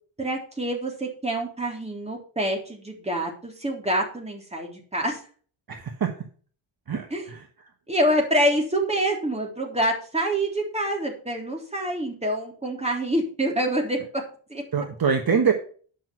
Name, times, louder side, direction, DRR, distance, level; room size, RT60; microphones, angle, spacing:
voice 1, 0.2-5.2 7.1-7.2 7.9-14.0 14.5-14.6, right 1 dB, 15° right, 0 dB, 3.6 m, -26 dB
voice 2, 5.7-6.1 6.9-7.7 14.7-15.5, right 6 dB, 45° right, 4 dB, 1.3 m, -25 dB
10.0 x 6.1 x 5.9 m, 0.42 s
wide cardioid pair, 125°, 48 cm